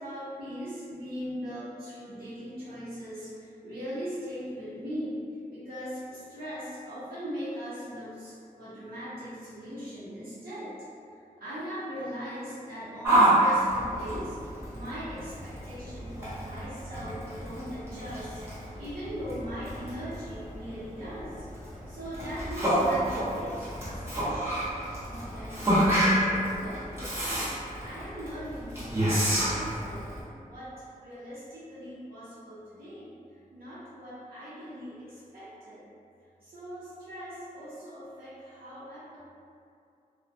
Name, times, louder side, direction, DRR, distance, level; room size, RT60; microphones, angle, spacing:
voice 1, 0.0-5.2 5.5-10.7 11.1-27.1 27.8-30.1 30.4-35.8 36.4-39.2, equal, 85° right, -13 dB, 0.7 m, -40 dB
Yell, 13.0-30.2, right 1 dB, 15° right, 0.8 m, -29 dB
2.3 x 2.1 x 2.6 m, 2.5 s
wide cardioid pair, 110°, 15 cm